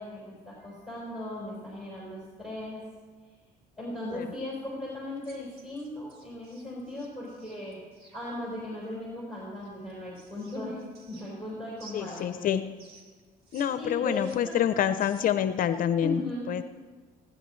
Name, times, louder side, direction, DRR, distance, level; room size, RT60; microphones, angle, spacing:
voice 1, 0.0-2.8 3.8-7.8 8.1-10.8 11.1-12.5 13.8-14.6 16.0-16.6, left 1 dB, 5° right, -5 dB, 4.3 m, -37 dB
sound 1, 5.2-8.2 9.6-11.5 11.8-13.7 13.9-15.4, right 4 dB, 70° right, 3.1 m, -55 dB
voice 2, 11.9-12.8 13.5-16.6, left 9 dB, 55° left, 11 dB, 0.6 m, -27 dB
27.5 x 10.0 x 3.2 m, 1.5 s
cardioid pair, 110°, 17 cm